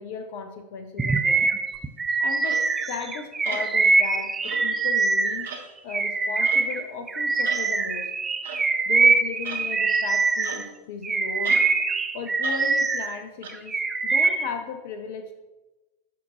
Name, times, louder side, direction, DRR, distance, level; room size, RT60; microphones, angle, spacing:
voice 1, 0.0-1.5 2.2-5.5 5.8-8.1 8.9-11.6 12.1-15.3, left 5 dB, 50° left, 7 dB, 0.5 m, -36 dB
Bird vocalization bird call bird song, 1.0-5.5 5.9-10.6 11.0-13.1 13.5-14.5, right 4 dB, 15° right, 0.4 m, -23 dB
sound 1, 2.4-2.7 3.4-3.7 4.4-4.8 5.4-5.7 6.4-6.7 7.4-7.7 8.4-8.7 9.4-9.7 10.4-10.9 11.4-11.7 12.4-12.7 13.4-13.5, right 5 dB, 60° right, 0.8 m, -38 dB
8.4 x 5.7 x 2.9 m, 1.1 s
figure-of-eight pair, 90°, 0 cm